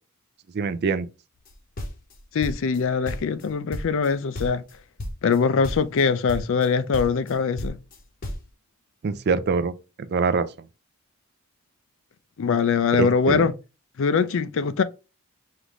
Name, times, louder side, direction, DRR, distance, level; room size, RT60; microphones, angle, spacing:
voice 1, 0.5-1.1 9.0-9.7 10.1-10.5 13.0-13.5, right 4 dB, 45° right, 0.4 m, -24 dB
sound 1, 1.5-2.8 3.1-4.1 4.3-4.7 5.0-5.4 5.6-6.0 6.3-6.7 6.9-8.5, left 1 dB, 40° left, 0.8 m, -33 dB
voice 2, 2.3-4.6 5.2-7.8 12.4-13.5 14.0-14.8, left 5 dB, 60° left, 0.4 m, -22 dB
5.0 x 2.6 x 3.0 m
head